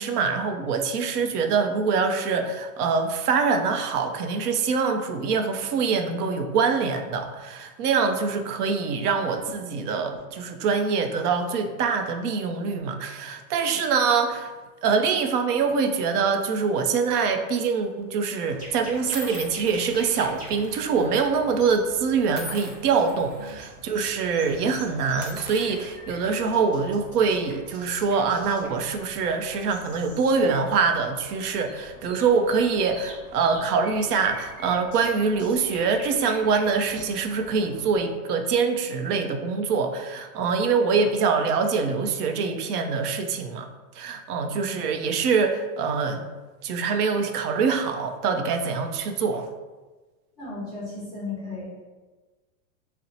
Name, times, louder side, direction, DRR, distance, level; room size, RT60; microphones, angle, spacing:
voice 1, 0.0-14.5 14.8-43.7 43.9-46.3 46.6-49.5, right 5 dB, 90° right, 6 dB, 0.6 m, -24 dB
sound 1, 17.4-17.7 18.5-18.6 19.1-21.1 21.3-21.5 22.3-23.5 23.9-24.1 24.4-24.6 25.1-26.6, equal, 45° right, 0.6 m, -42 dB
sound 2, 18.5-38.0, equal, 15° right, 1.1 m, -45 dB
voice 2, 50.4-51.8, left 3 dB, 10° left, -10 dB, 0.5 m, -35 dB
2.7 x 2.1 x 4.0 m, 1.3 s
supercardioid pair, 170°, 44 cm